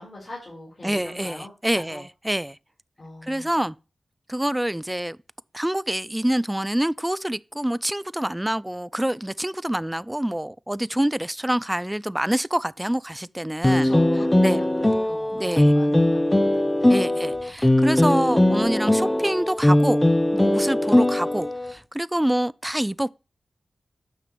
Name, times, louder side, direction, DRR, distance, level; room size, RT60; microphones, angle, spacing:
voice 1, 0.0-2.0 3.0-3.7 13.6-17.2, left 1 dB, 45° left, 4.2 m, -41 dB
voice 2, 0.8-2.6 3.2-3.7 4.3-5.2 5.5-13.9 14.4-14.6 15.3-15.7 16.9-20.0 20.3-23.1, right 1 dB, 10° right, 0.3 m, -26 dB
sound 1, 13.6-21.7, left 1 dB, 15° left, 0.8 m, -20 dB
9.1 x 5.8 x 3.2 m
cardioid pair, 55°, 0 cm